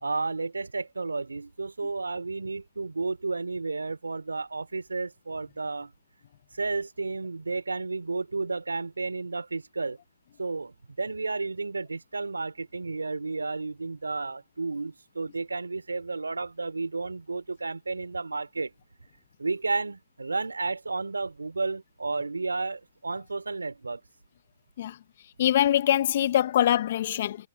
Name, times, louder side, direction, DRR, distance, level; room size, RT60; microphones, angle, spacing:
voice 1, 0.0-5.9 6.5-10.0 10.4-18.7 19.4-24.0, right 3 dB, 90° right, 2.9 m, -32 dB
voice 2, 25.4-27.4, left 11 dB, 55° left, 1.2 m, -23 dB
hypercardioid pair, 125°, 0 cm